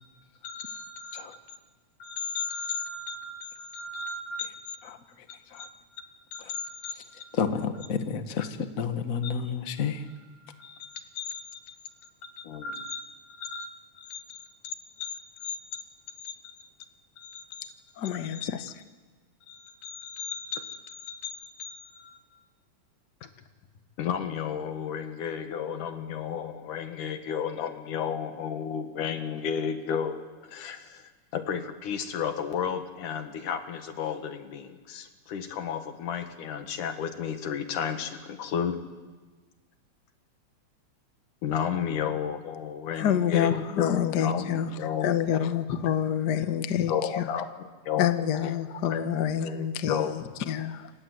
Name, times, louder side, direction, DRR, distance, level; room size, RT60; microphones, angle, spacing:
voice 1, 0.4-1.6 2.0-4.8 5.5-5.7 6.3-7.4 8.4-8.5 9.2-9.3 10.2-10.3 10.6-11.8 12.2-13.0 13.4-13.7 14.1-15.8 16.2-16.7 17.2-17.7 18.3-18.5 19.5-22.2 23.2-23.3 24.0-31.0 31.3-38.9 41.4-45.5 46.9-47.5 47.8-48.5 48.9-49.1 49.4-50.2, left 7 dB, 80° left, 3.2 m, -33 dB
voice 2, 7.4-8.5 8.8-10.0, left 6 dB, 40° left, 1.3 m, -29 dB
voice 3, 18.0-18.7 42.9-44.7 45.0-47.3 48.0-50.9, left 9 dB, 60° left, 1.1 m, -27 dB
28.5 x 26.0 x 8.1 m
omnidirectional pair, 3.5 m